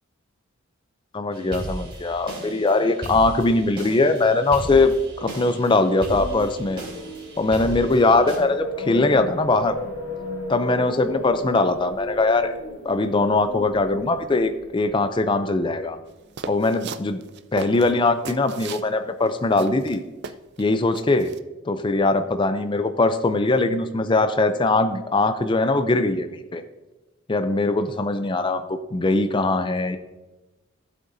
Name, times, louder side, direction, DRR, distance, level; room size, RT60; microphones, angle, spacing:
voice 1, 1.1-6.8 7.4-9.8 10.5-12.5 12.8-16.0 16.5-17.2 17.5-20.0 20.6-21.3 21.7-26.6 27.3-30.0, left 2 dB, 20° left, 9 dB, 0.4 m, -21 dB
sound 1, 1.3-8.4, right 1 dB, 25° right, 3.4 m, -36 dB
sound 2, 5.8-15.9, left 1 dB, 60° left, 1.5 m, -35 dB
sound 3, 16.4-18.9 19.3-19.4 19.6-20.6 20.9-21.4, right 5 dB, 50° right, 0.4 m, -36 dB
15.0 x 7.9 x 2.6 m, 1.1 s
head